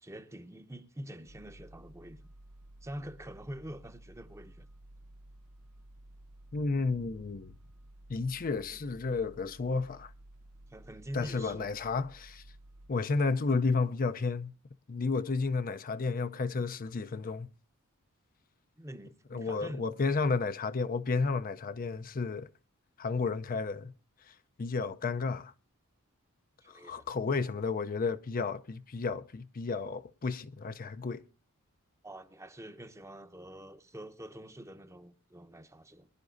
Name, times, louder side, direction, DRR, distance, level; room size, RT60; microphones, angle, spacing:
voice 1, 0.0-2.3 2.8-4.7 8.7-8.8 10.7-11.7 18.8-20.0 26.6-27.1 32.0-36.1, equal, 15° right, 0.8 m, -45 dB
sound 1, 1.3-12.9, right 1 dB, 90° right, 1.0 m, -54 dB
voice 2, 6.5-7.5 8.1-10.1 11.1-12.4 12.9-14.5 14.9-17.5 19.3-22.5 23.0-23.9 24.3-25.5 26.7-31.2, left 4 dB, 40° left, 0.5 m, -32 dB
23.5 x 11.0 x 2.6 m
head